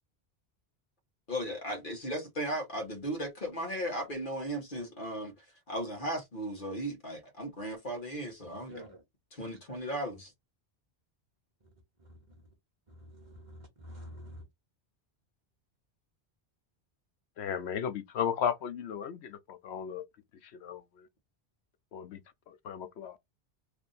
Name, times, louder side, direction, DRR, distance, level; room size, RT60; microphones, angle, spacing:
voice 1, 1.3-8.8 9.3-10.3, equal, 50° left, 1.6 m, -36 dB
voice 2, 8.7-9.0 12.0-12.4 12.9-14.4, equal, 30° right, 1.2 m, -48 dB
voice 3, 17.4-20.0 20.4-21.1 21.9-22.2 22.5-23.2, left 8 dB, 75° left, 0.9 m, -35 dB
3.4 x 2.5 x 4.0 m
omnidirectional pair, 1.1 m